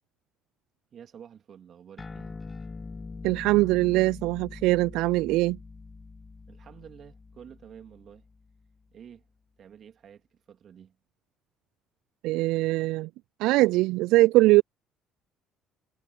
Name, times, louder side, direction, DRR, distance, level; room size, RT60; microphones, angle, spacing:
voice 1, 0.9-2.4 6.5-8.2 8.9-9.2 9.6-11.0, right 8 dB, 50° right, 3.1 m, -50 dB
sound 1, 2.0-8.8, left 4 dB, 25° left, 1.0 m, -43 dB
voice 2, 3.2-5.6 12.2-13.1 13.4-14.6, right 20 dB, 70° right, 0.3 m, -22 dB
hypercardioid pair, 55°, 0 cm